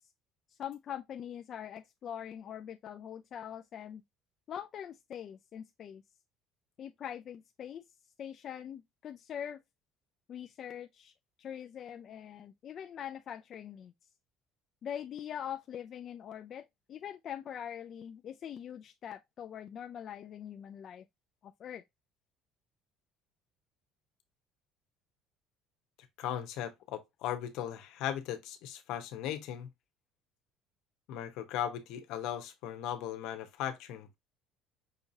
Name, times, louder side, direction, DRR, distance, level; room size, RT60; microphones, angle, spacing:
voice 1, 0.5-4.0 4.5-6.0 6.8-7.8 8.2-9.6 10.3-11.1 11.4-13.9 14.8-21.0 21.4-21.8, left 9 dB, 45° left, 0.4 m, -43 dB
voice 2, 26.2-29.7 31.1-34.2, left 10 dB, 75° left, 1.0 m, -37 dB
5.8 x 2.8 x 2.7 m
cardioid pair, 125°, 0 cm